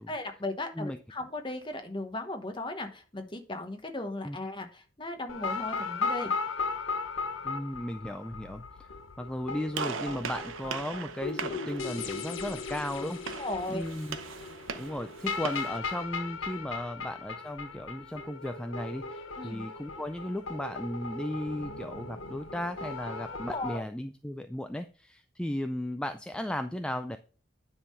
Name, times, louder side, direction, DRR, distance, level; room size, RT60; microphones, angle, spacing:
voice 1, 0.1-6.3 13.4-13.8 19.4-19.6 23.5-23.9, left 2 dB, 25° left, 6 dB, 1.1 m, -36 dB
sound 1, 5.3-23.8, left 4 dB, 90° left, 0.9 m, -37 dB
voice 2, 7.4-8.9 9.2-14.2 14.8-27.2, left 1 dB, 5° left, 8 dB, 0.3 m, -36 dB
Gunshot gunfire, 9.7-15.8, right 5 dB, 90° right, 0.8 m, -40 dB
9.7 x 3.7 x 5.4 m, 0.38 s
head